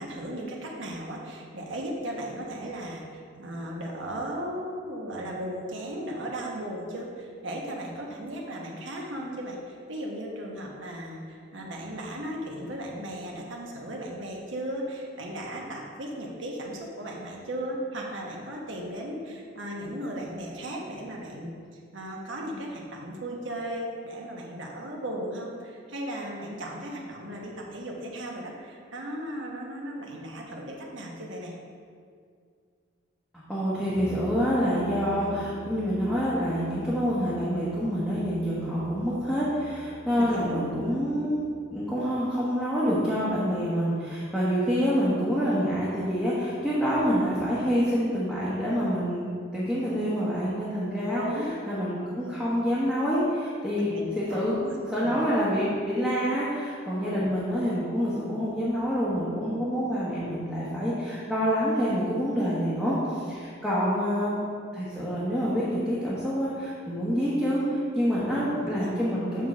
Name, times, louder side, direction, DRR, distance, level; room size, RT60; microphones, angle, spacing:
voice 1, 0.0-21.5 21.9-31.5 40.1-40.9 51.1-51.8 53.7-55.2 57.0-57.2 68.3-68.9, right 1 dB, 75° right, -2 dB, 1.1 m, -36 dB
voice 2, 33.3-41.4 41.7-51.2 51.7-54.6 54.9-64.4 64.7-69.5, equal, 5° left, -11 dB, 1.0 m, -27 dB
Brass instrument, 33.9-41.4, left 2 dB, 35° right, 1.4 m, -44 dB
7.2 x 3.7 x 6.3 m, 2.2 s
head